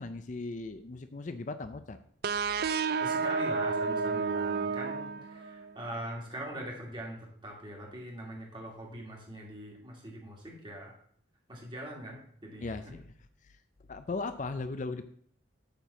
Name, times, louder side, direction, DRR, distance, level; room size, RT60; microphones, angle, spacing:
voice 1, 0.0-2.0 12.6-13.1 13.4-13.6 13.9-15.0, left 3 dB, 40° left, 10 dB, 0.4 m, -37 dB
sound 1, 2.2-5.8, right 5 dB, 50° right, 0.4 m, -31 dB
voice 2, 3.0-10.9 11.5-12.7, right 1 dB, 25° right, -2 dB, 2.6 m, -42 dB
8.9 x 4.6 x 6.8 m, 0.63 s
head